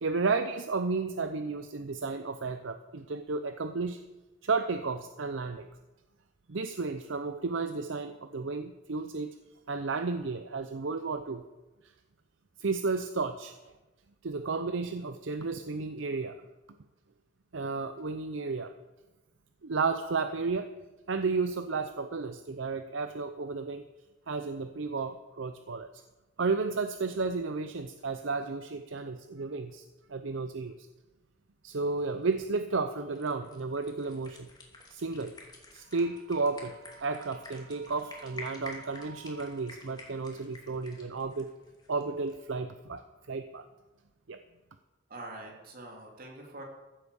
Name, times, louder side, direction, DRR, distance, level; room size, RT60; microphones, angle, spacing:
voice 1, 0.0-4.0 4.4-5.7 6.5-9.4 9.7-11.4 12.6-13.6 14.2-16.4 17.5-18.7 19.6-20.7 21.1-23.8 24.3-26.0 26.4-29.8 30.1-30.9 31.6-34.5 34.9-35.4 35.7-41.5 41.9-43.7 44.3-44.4, right 4 dB, 70° right, 9 dB, 0.7 m, -33 dB
sound 1, 31.7-42.4, left 2 dB, 20° left, 2.6 m, -50 dB
voice 2, 45.1-46.6, right 2 dB, 50° right, 0 dB, 3.0 m, -44 dB
15.0 x 8.3 x 7.0 m, 1.1 s
head